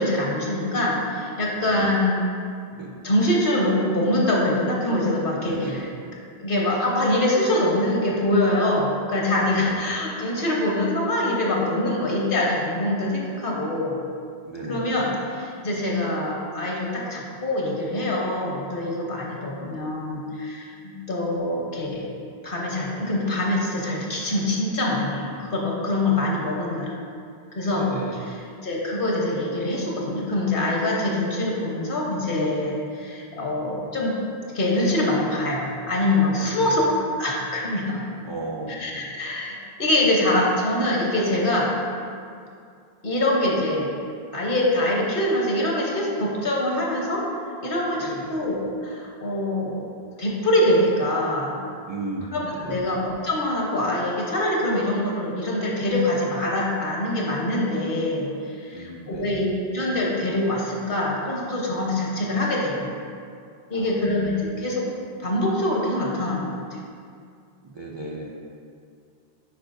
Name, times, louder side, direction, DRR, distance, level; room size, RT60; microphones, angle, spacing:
voice 1, 0.0-2.2 3.0-5.9 6.4-13.9 14.7-22.0 22.4-26.9 27.5-27.9 28.2-28.3 28.6-34.2 34.5-36.8 37.2-38.0 38.8-41.7 43.0-43.9 44.3-47.2 47.6-48.6 48.8-49.8 50.2-51.6 52.3-62.9 63.7-64.9 65.2-66.5, left 1 dB, 55° left, -3 dB, 1.3 m, -24 dB
voice 2, 5.4-5.9 9.5-9.8 14.4-14.9 26.1-26.6 27.7-28.2 36.4-36.8 38.2-39.2 48.0-48.4 51.9-52.9 58.7-59.4 63.7-64.0 67.6-68.3, right 2 dB, 40° right, -4 dB, 0.4 m, -35 dB
9.2 x 4.5 x 2.6 m, 2.4 s
omnidirectional pair, 1.1 m